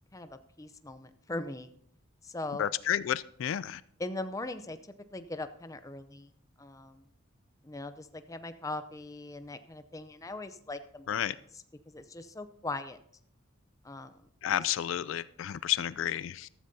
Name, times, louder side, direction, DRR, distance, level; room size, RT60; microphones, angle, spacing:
voice 1, 0.1-1.7 2.2-2.7 4.0-4.8 5.1-6.3 6.6-7.0 7.6-11.4 11.9-13.0 13.8-14.3, left 2 dB, 15° left, 0.5 m, -40 dB
voice 2, 2.6-3.8 11.1-11.4 14.4-16.5, left 10 dB, 70° left, 0.3 m, -31 dB
14.0 x 13.5 x 2.7 m
head